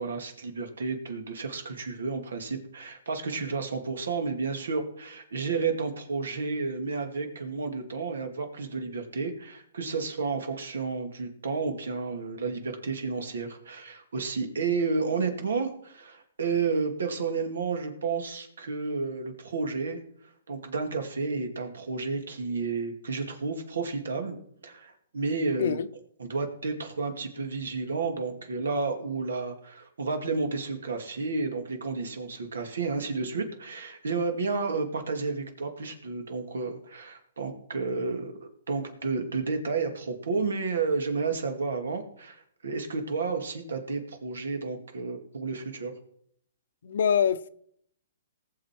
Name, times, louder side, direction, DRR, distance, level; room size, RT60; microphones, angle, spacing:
voice 1, 0.0-24.4 24.6-25.8 26.2-45.9, right 4 dB, 90° right, 2.4 m, -31 dB
voice 2, 46.8-47.5, left 8 dB, 65° left, 0.7 m, -24 dB
19.0 x 6.9 x 4.5 m
hypercardioid pair, 155°, 0 cm